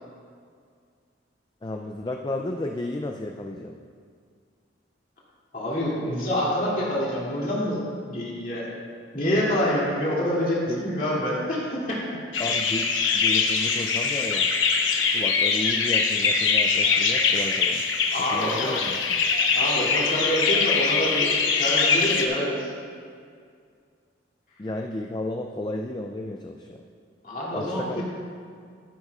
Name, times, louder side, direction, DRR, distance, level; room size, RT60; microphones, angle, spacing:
voice 1, 1.6-3.8 10.7-10.8 12.4-12.9 13.1-14.5 15.1-17.8 18.3-19.3 24.6-26.8 27.5-28.0, left 1 dB, 20° left, 3 dB, 0.3 m, -33 dB
voice 2, 5.5-8.7 9.1-12.2 18.1-18.8 19.5-22.7 27.2-28.0, equal, 45° left, -6 dB, 2.6 m, -27 dB
sound 1, 12.3-22.3, left 5 dB, 75° left, 0.9 m, -23 dB
13.5 x 10.5 x 2.4 m, 2.2 s
head